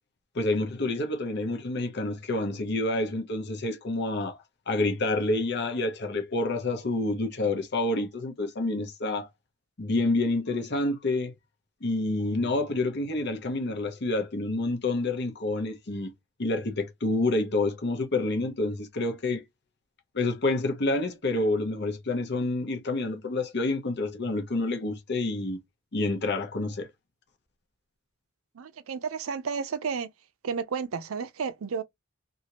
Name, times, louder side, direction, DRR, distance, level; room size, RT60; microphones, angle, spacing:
voice 1, 0.3-4.4 4.7-9.3 9.8-11.3 11.8-16.1 16.4-19.4 20.1-25.6 25.9-26.9, left 2 dB, 55° left, 0.9 m, -28 dB
voice 2, 28.6-30.1 30.4-31.8, right 6 dB, 80° right, 0.5 m, -32 dB
2.8 x 2.5 x 2.9 m
head